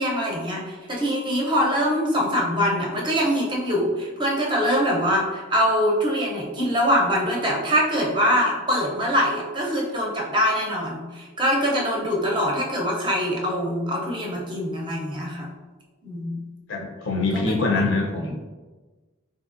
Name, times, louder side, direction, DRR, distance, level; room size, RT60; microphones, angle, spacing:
voice 1, 0.0-15.5 16.0-16.4 17.3-17.9, equal, 20° right, -2 dB, 0.5 m, -23 dB
voice 2, 16.7-18.3, left 3 dB, 60° left, 0 dB, 0.6 m, -24 dB
3.3 x 2.7 x 2.4 m, 1.3 s
head